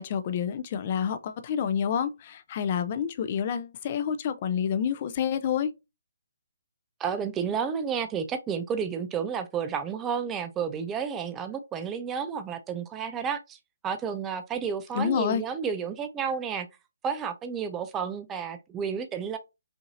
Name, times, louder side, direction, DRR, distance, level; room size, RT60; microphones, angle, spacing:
voice 1, 0.0-5.7 14.9-15.4, left 8 dB, 35° left, 0.5 m, -28 dB
voice 2, 7.0-13.6 13.8-16.7 17.0-19.4, right 7 dB, 15° right, 0.4 m, -31 dB
5.7 x 2.7 x 2.6 m
hypercardioid pair, 155°, 0 cm